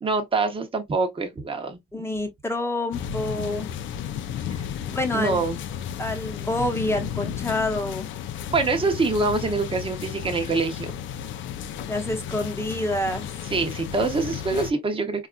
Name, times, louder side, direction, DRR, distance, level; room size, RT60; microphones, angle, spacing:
voice 1, 0.0-1.8 5.1-5.6 8.5-10.9 13.5-15.3, right 3 dB, 25° right, 0.8 m, -25 dB
voice 2, 1.9-3.7 4.8-5.4 6.0-8.1 11.9-13.5, left 1 dB, 15° left, 1.0 m, -28 dB
sound 1, 2.9-14.7, left 9 dB, 75° left, 0.4 m, -33 dB
4.0 x 2.4 x 2.3 m
cardioid pair, 90°, 20 cm